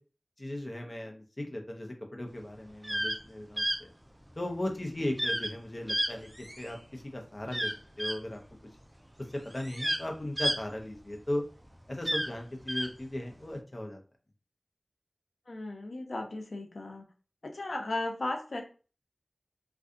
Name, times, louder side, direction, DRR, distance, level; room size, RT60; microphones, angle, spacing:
voice 1, 0.4-3.9 4.4-7.7 8.0-8.4 9.5-11.4 11.9-14.0, left 1 dB, 40° left, 2 dB, 0.8 m, -37 dB
sound 1, 2.7-3.2 3.6-3.8 5.2-5.5 5.9-6.8 7.5-8.2 9.1-9.2 9.5-11.3 11.9-12.9, right 1 dB, 15° right, 0.4 m, -31 dB
voice 2, 15.5-17.1 17.4-18.6, left 2 dB, 90° left, 3 dB, 0.6 m, -36 dB
2.6 x 2.3 x 3.6 m, 0.35 s
wide cardioid pair, 60°, 0 cm